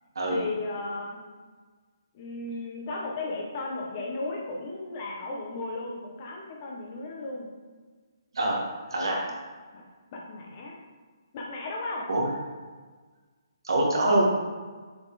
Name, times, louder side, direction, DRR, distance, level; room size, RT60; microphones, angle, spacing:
voice 1, 0.3-1.2 2.1-7.5 9.7-10.7 11.3-12.1, left 2 dB, 30° left, -2 dB, 1.2 m, -35 dB
voice 2, 8.9-9.3 12.1-12.3 13.6-14.2, right 1 dB, 75° right, -2 dB, 1.9 m, -24 dB
6.9 x 4.4 x 4.2 m, 1.4 s
hypercardioid pair, 160°, 2 cm